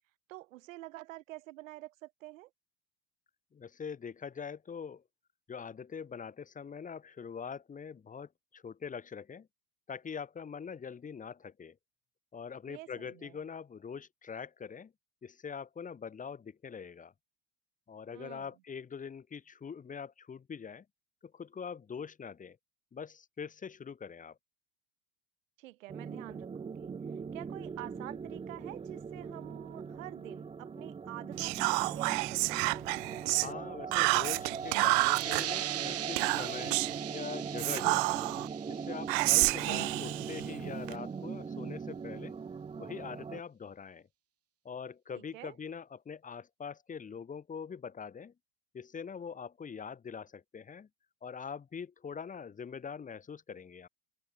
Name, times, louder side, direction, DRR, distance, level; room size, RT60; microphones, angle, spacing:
voice 1, 0.3-2.5 12.7-13.4 18.1-18.5 25.6-26.9 27.3-32.6 45.2-45.6, right 17 dB, 85° right, 5.9 m, -47 dB
voice 2, 3.5-5.0 5.5-9.5 9.9-11.7 12.3-14.9 15.2-17.1 17.9-20.8 21.2-22.6 22.9-24.4 33.3-36.8 37.1-38.2 38.7-42.4 42.8-44.1 44.6-48.3 48.7-50.9 51.2-53.9, left 6 dB, 20° left, 3.1 m, -43 dB
sound 1, 25.9-43.4, right 5 dB, 15° right, 1.2 m, -40 dB
Whispering, 31.4-33.5 33.9-35.4 36.2-37.0 37.6-38.5 39.1-41.0, right 40 dB or more, 60° right, 1.2 m, -29 dB
sound 2, 34.5-39.9, right 13 dB, 40° right, 5.3 m, -40 dB
supercardioid pair, 135°, 38 cm